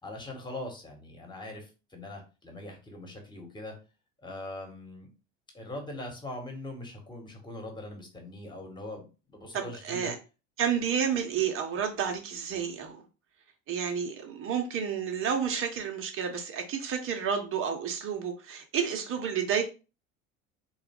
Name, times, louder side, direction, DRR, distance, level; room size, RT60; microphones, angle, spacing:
voice 1, 0.0-3.7 4.2-5.1 5.5-10.1, left 1 dB, 10° left, 2 dB, 1.5 m, -41 dB
voice 2, 9.5-10.1 10.6-13.0 13.7-19.6, right 7 dB, 35° right, 3 dB, 0.9 m, -30 dB
3.9 x 2.4 x 3.7 m, 0.31 s
hypercardioid pair, 70°, 37 cm